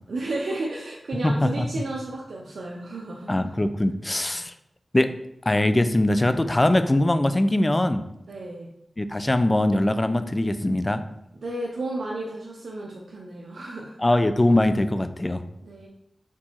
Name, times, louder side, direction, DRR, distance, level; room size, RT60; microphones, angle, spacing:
voice 1, 0.1-3.3 8.3-8.7 11.4-14.0 15.6-15.9, right 2 dB, 85° right, -2 dB, 0.5 m, -32 dB
voice 2, 1.2-1.7 3.3-4.5 4.9-5.1 5.5-8.0 9.0-11.0 14.0-15.4, left 1 dB, 25° left, 10 dB, 0.4 m, -22 dB
4.4 x 4.1 x 2.9 m, 0.80 s
wide cardioid pair, 65°, 0 cm